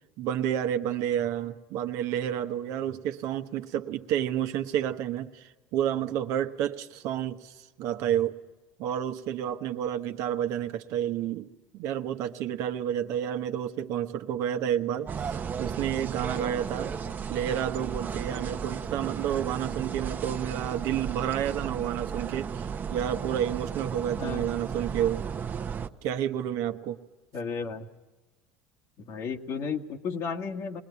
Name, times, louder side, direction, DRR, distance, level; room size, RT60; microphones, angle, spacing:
voice 1, 0.2-8.3 8.8-16.9 17.3-25.2 26.0-27.0, right 10 dB, 60° right, 1.1 m, -30 dB
sound 1, 15.1-25.9, right 7 dB, 30° right, 1.0 m, -34 dB
voice 2, 24.1-24.5 27.3-27.9 29.0-30.8, left 5 dB, 50° left, 1.7 m, -34 dB
22.0 x 19.0 x 8.3 m
supercardioid pair, 105°, 6 cm